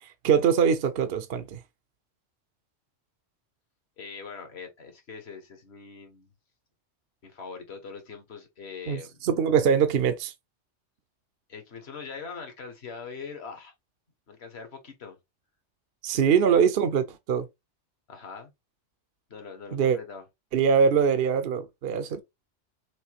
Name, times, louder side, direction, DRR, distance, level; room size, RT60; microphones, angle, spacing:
voice 1, 0.0-1.6 8.9-10.3 16.0-17.5 19.7-20.0 20.5-22.2, right 7 dB, 55° right, 0.8 m, -23 dB
voice 2, 4.0-6.3 7.2-9.2 11.5-13.7 14.3-15.2 16.1-16.6 18.1-18.5 19.3-20.2, left 5 dB, 55° left, 1.5 m, -42 dB
6.3 x 2.7 x 2.9 m
omnidirectional pair, 1.3 m